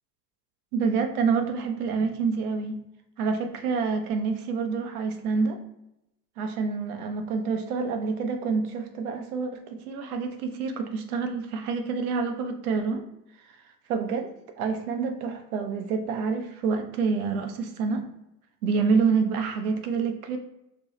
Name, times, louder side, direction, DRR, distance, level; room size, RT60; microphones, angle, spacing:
voice 1, 0.7-2.8 3.2-5.6 6.4-13.0 13.9-14.3 14.6-18.1 18.6-20.4, right 5 dB, 65° right, 6 dB, 0.7 m, -27 dB
4.2 x 2.2 x 3.0 m, 0.86 s
figure-of-eight pair, 70°, 48 cm